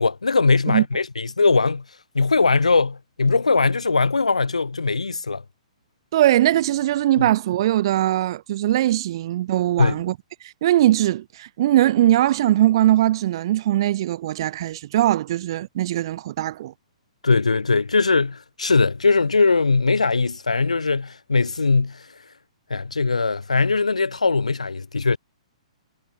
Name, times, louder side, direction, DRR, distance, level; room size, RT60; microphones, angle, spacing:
voice 1, 0.0-1.8 2.1-5.4 7.2-7.3 9.8-10.0 17.2-22.0 22.7-25.2, left 4 dB, 80° left, 0.7 m, -20 dB
voice 2, 6.1-10.1 10.6-16.7, right 13 dB, 45° right, 0.7 m, -20 dB
figure-of-eight pair, 120°, 4 cm